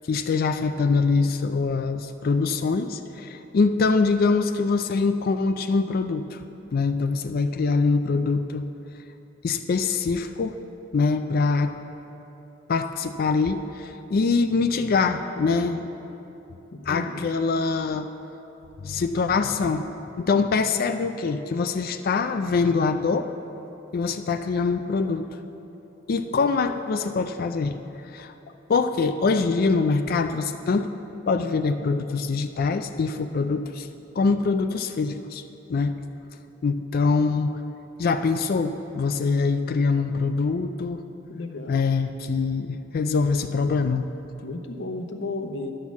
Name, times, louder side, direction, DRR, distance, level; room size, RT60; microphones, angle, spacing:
voice 1, 0.1-6.4 6.7-8.7 9.4-10.6 10.9-11.8 12.7-15.9 16.9-18.1 18.8-19.9 20.2-23.3 23.9-25.4 26.1-27.8 28.1-28.3 28.7-30.9 31.3-33.9 34.2-35.4 35.7-36.0 36.6-37.6 38.0-41.0 41.7-44.1, left 4 dB, 50° left, 8 dB, 0.4 m, -24 dB
voice 2, 16.7-17.3 26.3-26.5 41.3-41.9 44.4-45.7, left 2 dB, 70° left, 5 dB, 0.8 m, -33 dB
11.5 x 6.3 x 7.1 m, 3.0 s
head